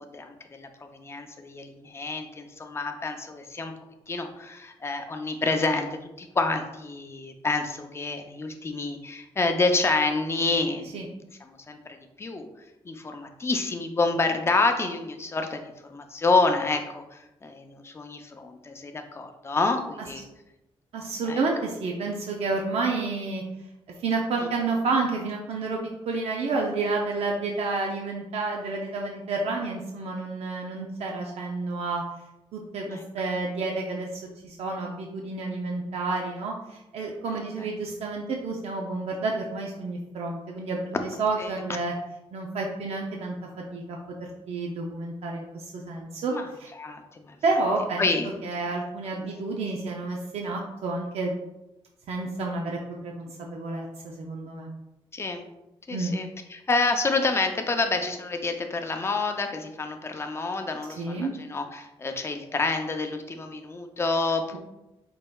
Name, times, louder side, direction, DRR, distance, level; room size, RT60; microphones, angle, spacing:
voice 1, 0.0-3.7 4.1-5.9 6.2-11.1 11.5-11.8 12.2-12.5 12.8-20.3 21.3-21.4 32.9-33.0 37.6-37.7 41.4-41.5 46.3-46.5 46.8-47.4 48.0-48.3 49.1-49.3 55.1-55.4 55.9-64.6, left 3 dB, 25° left, 5 dB, 0.5 m, -28 dB
voice 2, 20.9-23.4 24.0-25.8 26.1-32.0 32.5-41.9 42.3-43.4 43.7-44.0 44.5-46.3 46.6-46.7 47.4-48.1 48.4-51.3 52.1-54.7 55.9-56.1 61.0-61.3, right 3 dB, 85° right, 0 dB, 0.5 m, -30 dB
5.4 x 4.1 x 2.3 m, 0.95 s
wide cardioid pair, 135°, 10 cm